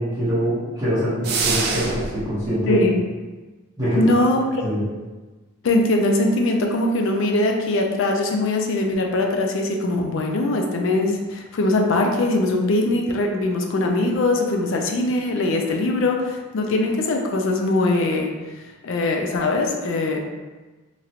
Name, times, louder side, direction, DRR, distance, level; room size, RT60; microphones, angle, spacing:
voice 1, 0.0-2.8 3.8-4.1 4.6-4.9, equal, 15° right, -14 dB, 0.9 m, -23 dB
sound 1, 1.2-2.2, right 4 dB, 45° right, 0.3 m, -24 dB
voice 2, 3.9-4.6 5.6-20.2, left 2 dB, 60° left, 2 dB, 0.4 m, -21 dB
3.1 x 2.4 x 2.8 m, 1.2 s
head